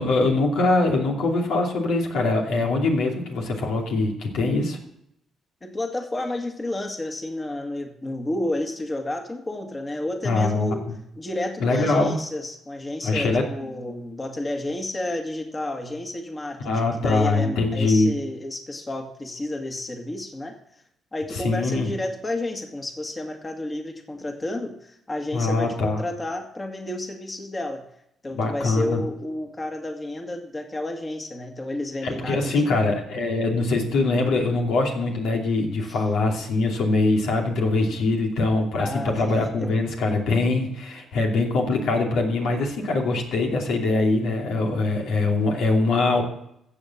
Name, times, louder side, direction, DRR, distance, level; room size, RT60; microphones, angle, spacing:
voice 1, 0.0-4.8 10.2-10.9 11.6-12.2 13.0-13.5 16.6-18.1 21.3-21.9 25.3-26.0 28.3-29.0 32.0-46.2, left 3 dB, 80° left, 1 dB, 2.7 m, -23 dB
voice 2, 5.6-10.9 11.2-20.8 21.1-27.8 28.2-32.9 35.9-36.0 38.8-39.7, left 1 dB, 25° left, 4 dB, 1.9 m, -31 dB
15.0 x 7.3 x 7.2 m, 0.77 s
cardioid pair, 90°, 0 cm